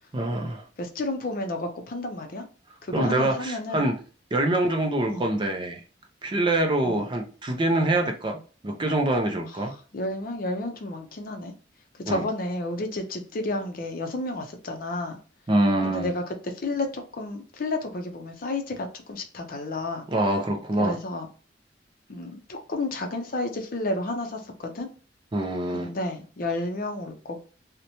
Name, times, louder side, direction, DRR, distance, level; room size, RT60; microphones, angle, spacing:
voice 1, 0.1-0.6 2.9-3.9 4.3-5.8 6.2-8.4 8.6-9.7 12.1-12.2 15.5-16.1 20.1-20.9 25.3-25.9, right 1 dB, 25° right, 3 dB, 0.4 m, -25 dB
voice 2, 0.8-2.5 2.8-3.9 5.1-5.3 6.8-7.1 9.5-9.6 9.9-11.5 12.1-15.2 15.8-20.0 20.8-21.3 22.1-24.9 25.7-27.4, left 2 dB, 50° left, 5 dB, 0.5 m, -31 dB
2.8 x 2.1 x 2.7 m, 0.38 s
head